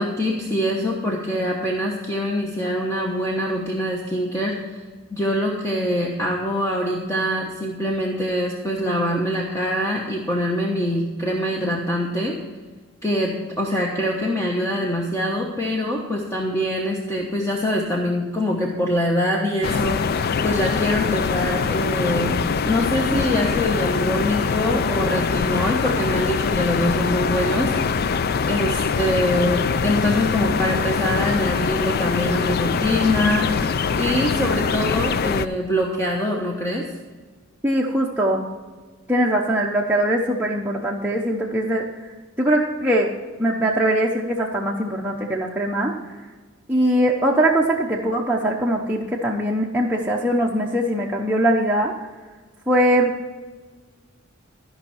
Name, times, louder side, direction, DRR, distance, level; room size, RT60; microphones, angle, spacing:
voice 1, 0.0-4.8 5.1-12.4 13.0-22.4 22.6-36.9, equal, 15° left, -2 dB, 1.1 m, -24 dB
sound 1, 19.6-35.5, left 5 dB, 50° left, 0.4 m, -23 dB
voice 2, 37.6-38.5 39.1-41.9 42.4-43.1 43.4-45.9 46.7-51.9 52.7-53.1, right 1 dB, 10° right, -3 dB, 0.8 m, -21 dB
13.5 x 5.5 x 5.7 m, 1.4 s
head